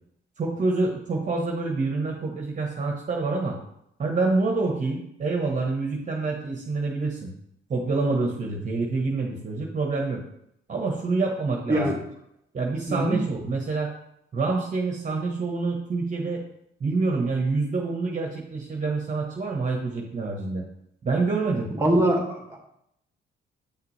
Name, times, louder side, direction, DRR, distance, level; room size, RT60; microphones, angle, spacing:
voice 1, 0.4-3.6 4.0-7.3 7.7-10.2 10.7-12.0 12.5-13.9 14.3-16.4 16.8-20.6 21.0-21.7, right 3 dB, 40° right, 0 dB, 1.3 m, -27 dB
voice 2, 12.9-13.2 21.8-22.6, right 1 dB, 15° right, 1 dB, 1.9 m, -23 dB
8.3 x 5.9 x 3.3 m, 0.76 s
cardioid pair, 90°, 20 cm